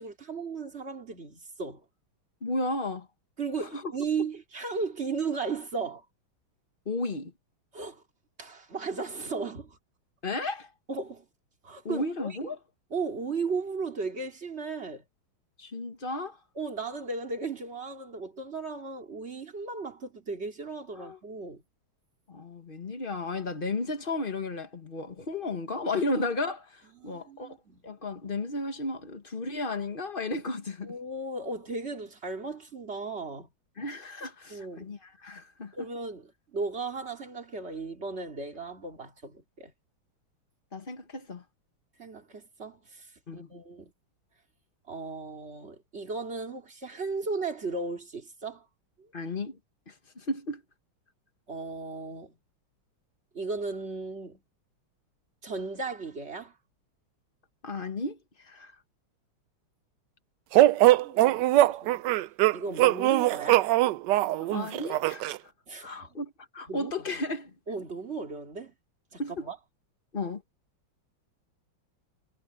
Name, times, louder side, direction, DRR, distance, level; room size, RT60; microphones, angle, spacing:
voice 1, 0.0-1.8 3.4-6.0 7.7-8.0 8.4-9.8 10.9-11.3 11.6-12.4 12.9-15.0 16.5-21.6 27.0-27.8 30.8-33.5 34.5-34.9 35.7-39.7 42.0-43.9 44.9-48.6 49.0-49.1 51.5-52.4 53.3-54.4 55.4-56.5 60.8-62.0 62.5-63.7 65.7-66.2 66.7-67.2 67.7-68.7 69.1-69.6, right 4 dB, 30° right, 3.0 m, -36 dB
voice 2, 2.4-3.1 3.6-3.9 6.8-7.3 10.2-10.7 11.8-12.6 15.6-16.4 20.9-21.2 22.3-27.6 27.8-31.0 33.8-35.9 40.7-41.4 43.3-43.5 49.1-49.6 49.9-50.6 57.6-58.8 64.4-65.5 65.8-67.5 69.2-69.4 70.1-70.4, left 2 dB, 30° left, 1.5 m, -34 dB
sound 1, 60.5-65.4, right 15 dB, 75° right, 1.0 m, -22 dB
omnidirectional pair, 2.3 m